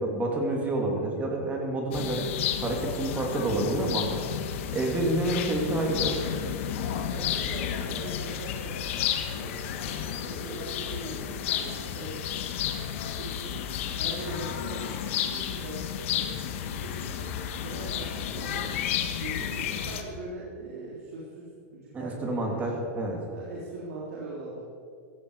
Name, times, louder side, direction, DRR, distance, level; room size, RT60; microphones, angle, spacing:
voice 1, 0.0-2.2 2.6-4.1 4.7-6.2 21.9-23.2, right 1 dB, 20° right, 0 dB, 3.0 m, -28 dB
sound 1, 1.9-20.0, left 9 dB, 60° left, 1.5 m, -32 dB
voice 2, 7.1-8.8 9.3-12.3 13.0-13.6 14.0-17.3 17.6-18.7 19.1-22.8 23.3-24.6, right 2 dB, 85° right, -6 dB, 3.7 m, -41 dB
16.0 x 14.0 x 4.9 m, 2.4 s
supercardioid pair, 145°, 8 cm